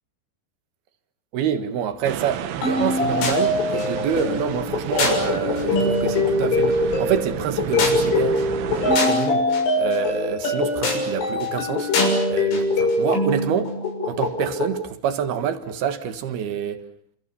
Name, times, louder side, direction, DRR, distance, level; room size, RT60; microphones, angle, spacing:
voice 1, 1.3-8.5 9.1-9.4 9.8-11.9 12.3-13.7 14.1-16.8, right 8 dB, 65° right, 3.2 m, -27 dB
sound 1, 2.0-9.0, right 10 dB, 80° right, 4.1 m, -32 dB
sound 2, 2.6-14.8, left 2 dB, 85° left, 9.3 m, -22 dB
29.5 x 27.0 x 7.1 m
omnidirectional pair, 5.5 m